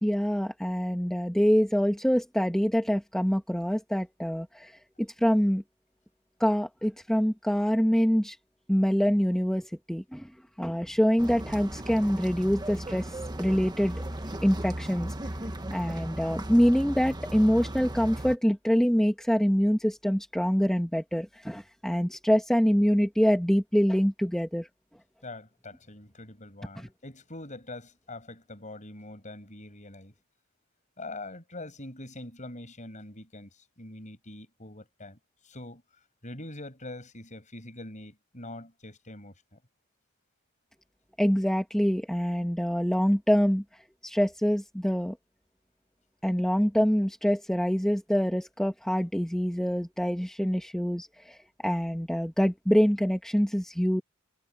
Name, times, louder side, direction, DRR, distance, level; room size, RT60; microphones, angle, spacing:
voice 1, 0.0-5.6 6.4-8.4 8.7-10.3 10.6-14.0 14.4-15.1 15.7-24.7 26.8-26.9 41.2-43.6 44.0-45.2 46.2-54.0, equal, 5° left, 1.3 m, -25 dB
sound 1, 11.2-18.3, right 1 dB, 20° right, 1.4 m, -36 dB
voice 2, 25.2-30.1 31.0-35.2 35.4-35.8 36.2-39.6, left 2 dB, 35° left, 7.3 m, -43 dB
head